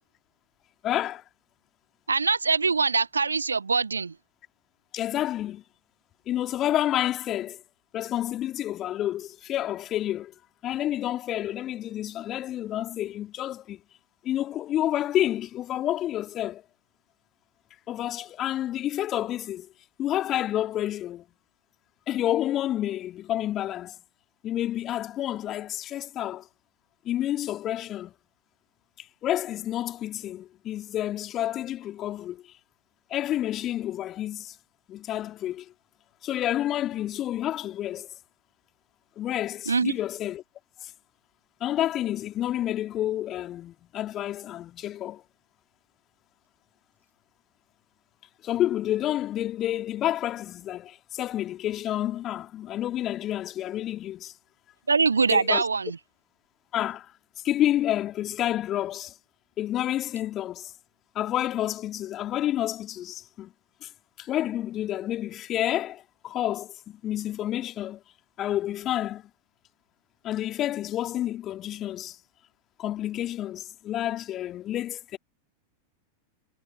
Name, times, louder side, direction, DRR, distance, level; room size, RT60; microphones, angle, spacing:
voice 1, 0.8-1.2 4.9-5.6 6.3-7.6 7.9-10.3 10.6-13.8 14.2-16.6 17.9-19.7 20.0-21.2 22.1-24.0 24.4-26.5 27.0-28.1 29.2-32.4 33.1-34.5 34.9-35.7 36.2-38.1 39.2-40.4 40.8-40.9 41.6-45.2 48.4-54.3 55.3-55.6 56.7-57.1 57.4-59.1 59.6-60.7 61.1-63.5 63.8-63.9 64.2-68.0 68.4-69.2 70.2-72.2 72.8-75.2, left 12 dB, 30° left, 2.9 m, -29 dB
voice 2, 2.1-4.1 39.7-39.9 54.9-56.0, right 4 dB, 75° right, 0.9 m, -23 dB
figure-of-eight pair, 90°, 0 cm